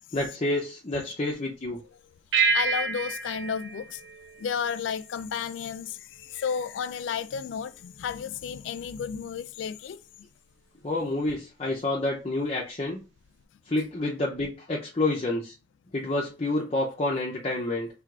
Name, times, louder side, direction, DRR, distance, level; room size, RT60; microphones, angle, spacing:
voice 1, 0.1-1.8 10.8-13.0 13.7-15.5 15.9-17.9, left 2 dB, 35° left, 0.6 m, -28 dB
sound 1, 2.3-5.1, right 5 dB, 80° right, 0.8 m, -28 dB
voice 2, 2.5-4.1 4.4-10.0, left 7 dB, 85° left, 0.3 m, -32 dB
4.7 x 3.3 x 2.4 m
head